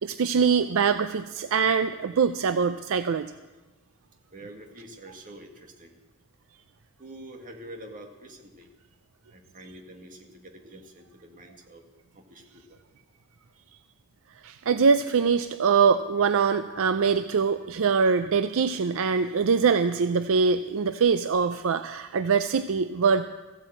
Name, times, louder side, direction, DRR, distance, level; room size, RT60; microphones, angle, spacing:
voice 1, 0.0-3.3 14.4-23.3, right 5 dB, 65° right, 10 dB, 0.5 m, -23 dB
voice 2, 4.3-5.9 7.0-8.7 9.3-11.8 12.1-12.8, right 1 dB, 40° right, 3 dB, 1.8 m, -46 dB
15.0 x 8.5 x 8.0 m, 1.2 s
head